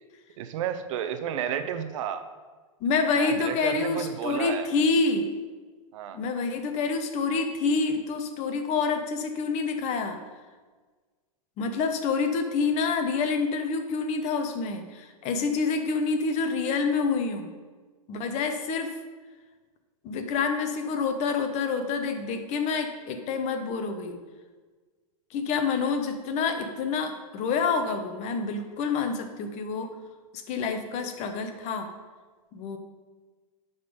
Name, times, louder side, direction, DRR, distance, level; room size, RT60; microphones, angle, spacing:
voice 1, 0.4-2.3 3.2-4.7 5.9-6.2, right 9 dB, 60° right, 9 dB, 0.7 m, -32 dB
voice 2, 2.8-5.3 6.1-10.2 11.6-17.5 18.1-18.9 20.0-24.2 25.3-30.0 30.3-31.9 32.5-32.8, left 4 dB, 40° left, 7 dB, 1.1 m, -27 dB
11.0 x 4.1 x 5.2 m, 1.4 s
hypercardioid pair, 120°, 18 cm